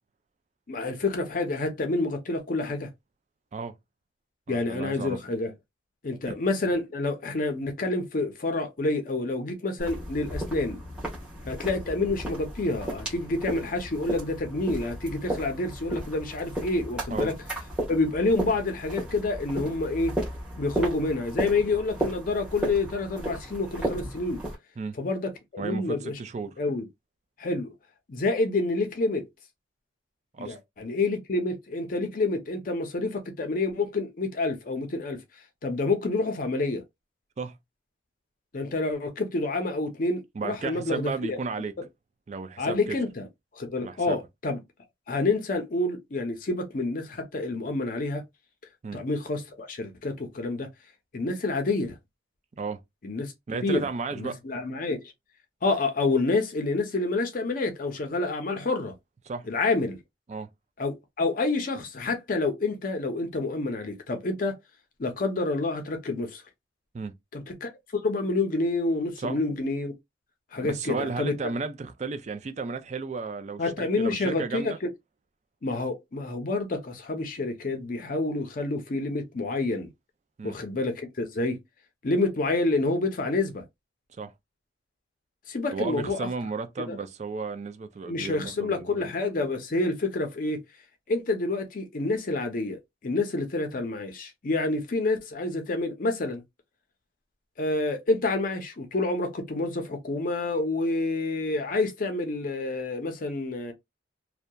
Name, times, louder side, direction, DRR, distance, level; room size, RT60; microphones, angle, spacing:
voice 1, 0.7-2.9 4.5-5.5 6.0-10.8 11.4-17.3 17.9-20.2 20.6-24.4 25.0-26.2 26.6-26.8 27.4-27.7 28.1-29.3 30.4-35.2 35.6-36.8 38.5-41.4 42.6-43.3 43.5-44.6 45.1-48.2 48.9-50.7 51.1-52.0 53.0-53.3 53.6-53.9 54.2-55.0 55.6-58.9 59.5-60.0 60.8-64.5 65.0-66.4 67.3-69.9 70.5-71.3 73.6-74.9 75.6-79.9 80.4-81.6 82.0-83.6 85.5-86.3 86.9-87.0 88.1-90.6 91.1-96.4 97.6-103.7, left 2 dB, 45° left, 0.5 m, -28 dB
voice 2, 4.5-5.2 6.3-6.4 17.1-17.3 24.8-25.0 25.6-26.5 30.3-30.6 37.4-37.5 40.4-41.7 42.3-43.0 43.8-44.2 48.8-49.0 52.5-52.8 53.5-54.4 59.3-59.5 60.3-60.5 66.9-67.1 69.2-69.4 70.6-74.8 80.4-80.6 84.2-84.3 85.7-89.1, right 4 dB, 35° right, 0.3 m, -34 dB
sound 1, 9.8-24.5, right 1 dB, 5° right, 1.1 m, -34 dB
2.7 x 2.1 x 2.2 m
head